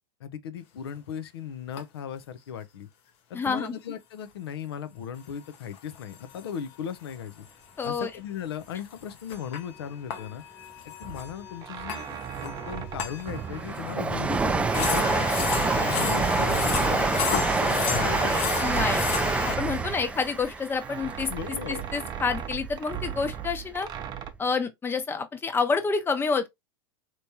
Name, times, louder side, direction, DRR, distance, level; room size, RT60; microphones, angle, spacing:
voice 1, 0.2-2.9 3.3-7.5 7.8-10.4 10.8-17.2 17.6-18.3 19.9-20.0 21.3-21.8, left 8 dB, 85° left, 0.6 m, -37 dB
sound 1, 1.0-1.1 1.8-1.9 3.6-3.7 5.5-6.7 7.1-7.2 7.5-7.6 7.8-8.0 8.8-13.9 14.3-14.4 14.7-19.8, left 7 dB, 50° left, 0.7 m, -32 dB
voice 2, 3.3-3.7 7.8-8.1 18.6-19.0 19.6-21.3 21.7-23.9 24.4-26.5, left 5 dB, 15° left, 0.7 m, -28 dB
sound 2, 11.0-14.2 14.5-17.1 17.6-20.5 20.8-24.3, right 9 dB, 30° right, 0.7 m, -38 dB
Train, 12.6-22.8 23.2-24.1 24.3-24.4, right 3 dB, 10° right, 0.4 m, -27 dB
3.4 x 3.0 x 2.7 m
supercardioid pair, 115°, 13 cm